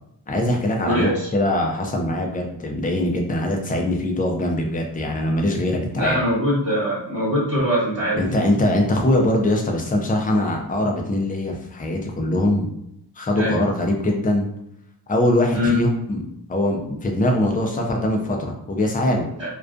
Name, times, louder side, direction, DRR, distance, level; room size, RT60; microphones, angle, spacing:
voice 1, 0.3-6.2 8.2-12.7 13.2-14.5 15.1-16.2 16.5-19.3, left 1 dB, 20° left, 1 dB, 0.5 m, -22 dB
voice 2, 0.8-1.3 5.9-8.2 13.4-13.6 15.5-15.8 19.4-19.5, equal, 40° right, -9 dB, 1.1 m, -22 dB
2.3 x 2.3 x 2.5 m, 0.79 s
wide cardioid pair, 70°, 42 cm